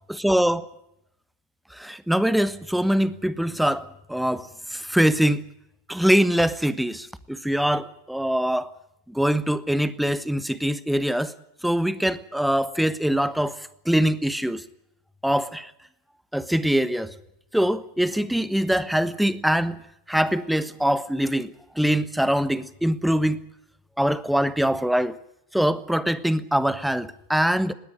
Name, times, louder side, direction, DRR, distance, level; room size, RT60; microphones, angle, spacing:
voice 1, 0.1-0.6 1.7-5.4 5.9-8.7 9.1-11.3 11.6-13.6 13.8-14.6 15.2-15.7 16.3-17.1 17.5-19.8 20.1-23.4 24.0-25.2 25.5-27.7, equal, ahead, 16 dB, 1.2 m, -23 dB
20.5 x 17.5 x 9.8 m, 0.80 s
figure-of-eight pair, 90°, 0 cm